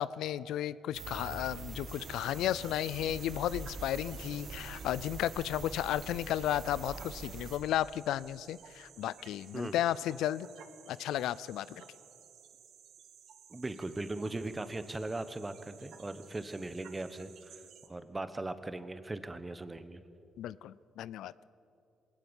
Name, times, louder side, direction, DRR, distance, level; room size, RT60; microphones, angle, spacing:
voice 1, 0.0-10.5 10.9-11.8 20.4-21.3, left 12 dB, 85° left, 19 dB, 0.4 m, -34 dB
sound 1, 0.9-7.6, right 4 dB, 55° right, 2.0 m, -44 dB
sound 2, 1.9-17.9, right 8 dB, 75° right, 1.7 m, -56 dB
voice 2, 13.5-17.6 17.9-20.0, right 2 dB, 20° right, 11 dB, 1.2 m, -39 dB
20.5 x 18.5 x 7.2 m, 2.6 s
cardioid pair, 90°, 0 cm